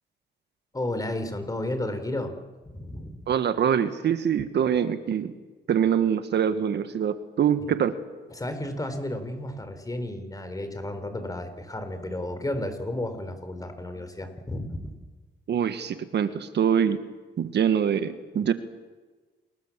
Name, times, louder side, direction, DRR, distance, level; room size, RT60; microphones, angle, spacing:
voice 1, 0.7-2.4 2.6-3.2 8.3-14.9, left 1 dB, 20° left, 8 dB, 4.2 m, -32 dB
voice 2, 3.3-5.3 5.7-7.9 15.5-17.0 17.4-18.5, right 8 dB, 60° right, 10 dB, 1.5 m, -24 dB
28.0 x 21.0 x 7.4 m, 1.3 s
cardioid pair, 90°, 20 cm